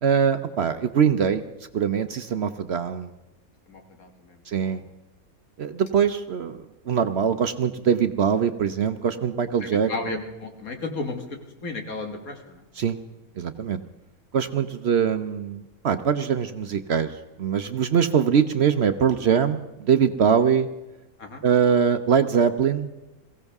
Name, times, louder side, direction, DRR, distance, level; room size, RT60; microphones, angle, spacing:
voice 1, 0.0-1.4 1.7-3.1 4.5-4.8 5.6-9.9 12.8-13.0 13.4-13.8 14.3-20.7 21.4-22.9, right 7 dB, 55° right, 10 dB, 0.8 m, -22 dB
voice 2, 3.7-4.8 9.6-12.6 21.2-21.4, left 3 dB, 75° left, 4 dB, 2.2 m, -34 dB
22.5 x 16.0 x 3.6 m, 1.0 s
omnidirectional pair, 1.5 m